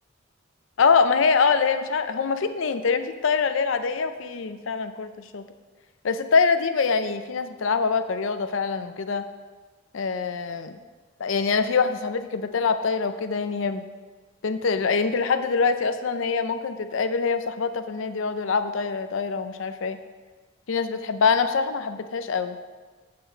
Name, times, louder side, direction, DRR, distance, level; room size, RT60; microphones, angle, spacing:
voice 1, 0.8-5.4 6.0-9.3 9.9-10.8 11.2-13.8 14.4-20.0 20.7-22.6, left 5 dB, 75° left, 10 dB, 0.5 m, -24 dB
7.7 x 6.7 x 3.9 m, 1.4 s
head